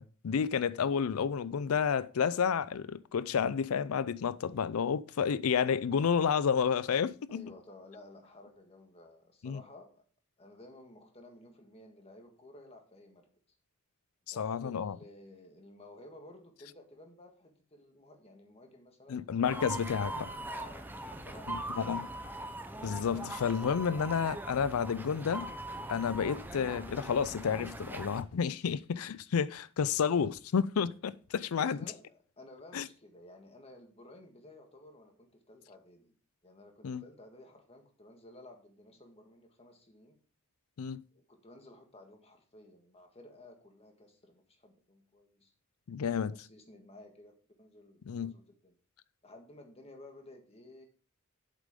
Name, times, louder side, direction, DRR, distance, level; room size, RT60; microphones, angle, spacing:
voice 1, 0.0-7.5 9.4-9.6 14.3-15.0 19.1-20.3 21.5-22.1 22.8-25.5 25.9-31.8 32.7-32.9 36.8-37.0 40.8-41.0 45.9-46.3 48.1-48.3, left 6 dB, 90° left, 0.4 m, -31 dB
voice 2, 7.3-10.0 10.4-13.3 14.3-19.2 20.5-21.8 23.9-24.0 30.0-30.3 31.5-36.1 36.4-40.2 41.1-45.5 46.0-48.7 49.2-50.9, left 1 dB, 30° left, 1.6 m, -54 dB
sound 1, 19.4-28.2, right 1 dB, 10° right, 0.7 m, -41 dB
8.3 x 7.6 x 3.7 m
head